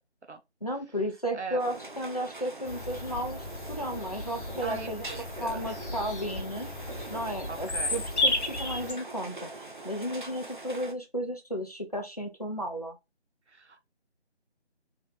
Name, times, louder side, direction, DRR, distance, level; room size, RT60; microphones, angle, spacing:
voice 1, 0.6-6.7 7.1-8.3 8.6-13.0, equal, 35° left, 0.6 m, -34 dB
sound 1, 1.6-10.9, right 2 dB, 45° right, 0.5 m, -43 dB
Bird vocalization bird call bird song, 2.6-8.9, left 2 dB, 85° left, 0.8 m, -34 dB
voice 2, 4.6-5.8 7.5-8.1 13.5-13.8, right 4 dB, 80° right, 0.8 m, -40 dB
2.9 x 2.3 x 3.2 m
figure-of-eight pair, 165°, 34 cm